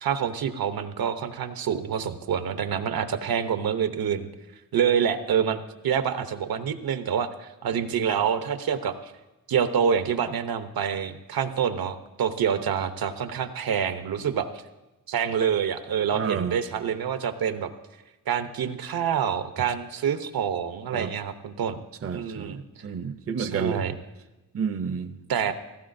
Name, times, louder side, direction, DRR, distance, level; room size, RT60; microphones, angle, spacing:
voice 1, 0.0-4.3 4.7-9.1 9.5-14.5 15.1-17.7 18.3-21.8 22.1-22.6 23.4-23.9 25.3-25.5, right 7 dB, 85° right, 9 dB, 0.8 m, -27 dB
voice 2, 16.1-16.6 20.9-21.1 22.0-23.8 24.5-25.2, right 6 dB, 40° right, 9 dB, 0.6 m, -30 dB
16.5 x 15.0 x 2.6 m, 1.0 s
wide cardioid pair, 170°, 35 cm